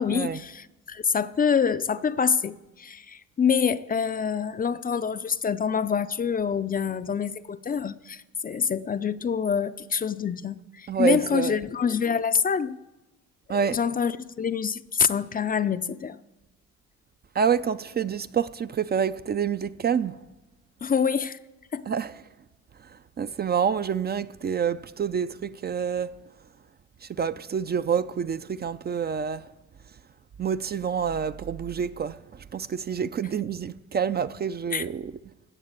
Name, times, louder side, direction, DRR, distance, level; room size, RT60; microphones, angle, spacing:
voice 1, 0.0-12.8 13.7-16.2 20.8-21.4 21.7-21.9 34.7-34.9, left 6 dB, 30° left, 0.4 m, -26 dB
voice 2, 10.9-11.5 13.5-13.8 17.3-20.2 21.9-22.1 22.8-26.2 27.0-29.5 30.4-35.1, right 7 dB, 35° right, 0.4 m, -27 dB
16.5 x 6.7 x 8.1 m
cardioid pair, 90°, 30 cm